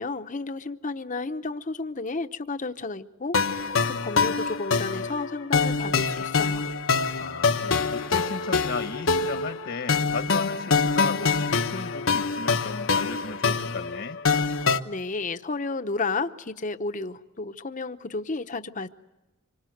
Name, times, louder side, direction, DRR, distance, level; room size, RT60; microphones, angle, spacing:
voice 1, 0.0-6.6 14.8-18.9, left 3 dB, 40° left, 10 dB, 0.8 m, -32 dB
sound 1, 3.3-14.8, left 4 dB, 80° left, 1.1 m, -25 dB
voice 2, 7.2-14.2, left 4 dB, 60° left, 7 dB, 1.3 m, -35 dB
26.5 x 24.5 x 7.9 m, 1.0 s
head